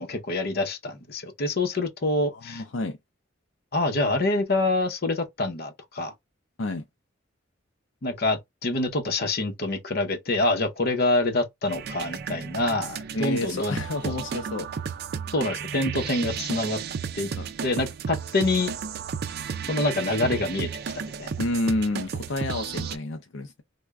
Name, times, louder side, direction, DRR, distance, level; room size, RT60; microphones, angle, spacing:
voice 1, 0.0-2.6 3.7-6.1 8.0-13.8 14.0-14.2 15.3-16.8 17.2-17.3 17.6-18.7 19.7-20.7 20.9-21.3, left 2 dB, 55° left, 0.8 m, -26 dB
voice 2, 2.3-3.0 6.6-6.8 13.1-14.7 17.4-17.5 21.4-23.6, left 2 dB, 75° left, 0.5 m, -29 dB
sound 1, 11.7-23.0, right 6 dB, 55° right, 0.4 m, -33 dB
3.3 x 2.2 x 3.5 m
head